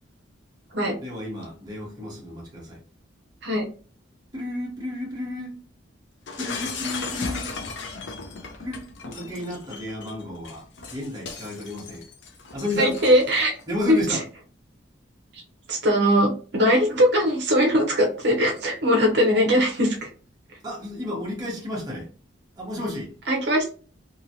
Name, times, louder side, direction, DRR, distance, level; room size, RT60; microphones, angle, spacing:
voice 1, 1.0-2.8 4.3-5.6 6.4-7.5 8.6-12.0 12.5-13.0 13.7-14.2 20.6-22.1 22.6-23.1, left 1 dB, 20° right, 0.9 m, -32 dB
Shatter, 6.3-13.6, left 4 dB, 65° left, 0.6 m, -36 dB
voice 2, 12.8-13.5 13.9-14.2 15.3-15.4 15.7-20.1 23.3-23.7, equal, 60° right, 0.7 m, -20 dB
2.9 x 2.6 x 2.7 m
head